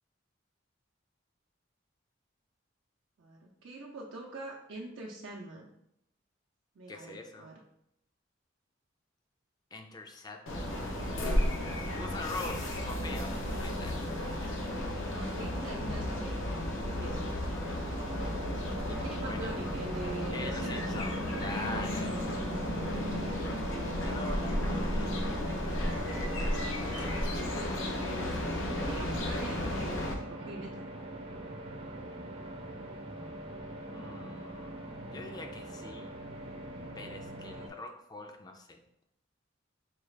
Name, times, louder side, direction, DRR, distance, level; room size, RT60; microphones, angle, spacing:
voice 1, 3.2-5.7 6.8-7.6 13.0-13.2 15.1-17.3 19.0-21.0 21.6-22.3 27.5-30.9, right 2 dB, 75° right, -2 dB, 0.5 m, -43 dB
voice 2, 6.9-7.5 9.7-10.7 12.0-13.9 18.9-19.5 20.3-22.2 24.0-25.2 33.9-34.8 35.0-36.1 37.0-38.8, left 2 dB, 20° left, 5 dB, 0.4 m, -43 dB
sound 1, 10.5-30.1, left 1 dB, 80° left, 0.7 m, -33 dB
sound 2, 18.0-37.7, right 1 dB, 30° right, 0.5 m, -43 dB
sound 3, 20.6-26.5 27.0-27.1, equal, 60° left, 1.2 m, -49 dB
4.6 x 2.4 x 3.2 m, 0.78 s
head